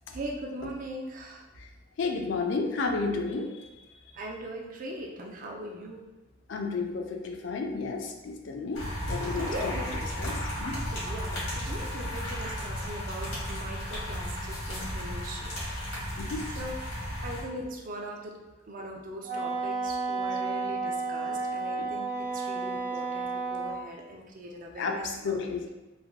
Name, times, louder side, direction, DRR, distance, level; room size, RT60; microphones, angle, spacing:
voice 1, 0.1-1.5 4.1-6.1 9.4-9.9 10.9-15.6 16.5-16.8 17.2-18.4 18.6-25.6, right 1 dB, 45° right, 1 dB, 0.4 m, -40 dB
voice 2, 2.0-3.5 6.5-9.7 10.2-10.8 16.2-16.5 24.8-25.0 25.2-25.7, left 4 dB, 65° left, 3 dB, 0.4 m, -32 dB
sound 1, 8.7-17.4, equal, 90° left, 1.3 m, -34 dB
Wind instrument woodwind instrument, 19.2-23.8, right 4 dB, 70° right, 0.7 m, -32 dB
3.3 x 2.1 x 2.3 m, 1.1 s
head